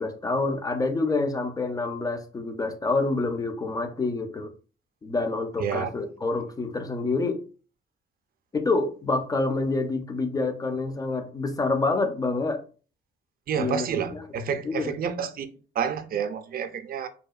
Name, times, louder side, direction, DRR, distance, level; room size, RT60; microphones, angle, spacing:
voice 1, 0.0-4.5 5.0-7.4 8.5-12.6 13.6-13.9 14.1-14.2 14.6-14.9, left 3 dB, 20° left, 0.4 m, -27 dB
voice 2, 5.6-5.9 13.5-15.5 15.8-17.1, right 7 dB, 50° right, 0.4 m, -29 dB
2.7 x 2.2 x 2.3 m
cardioid pair, 90°, 20 cm